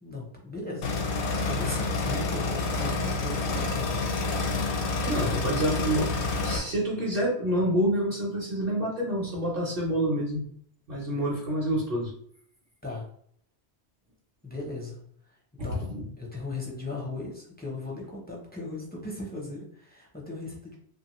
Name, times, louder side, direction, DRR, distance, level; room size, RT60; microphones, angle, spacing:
voice 1, 0.0-4.2 5.3-5.7 12.8-13.1 14.4-15.0 15.3-15.4 15.6-15.9 16.2-20.8, left 2 dB, 15° left, -3 dB, 0.4 m, -38 dB
sound 1, 0.8-6.6, left 3 dB, 75° left, 0.9 m, -28 dB
voice 2, 5.0-6.1 6.4-10.4 10.9-12.1 15.6-16.0, right 1 dB, 55° right, -4 dB, 0.8 m, -27 dB
2.8 x 2.3 x 2.9 m, 0.64 s
omnidirectional pair, 1.1 m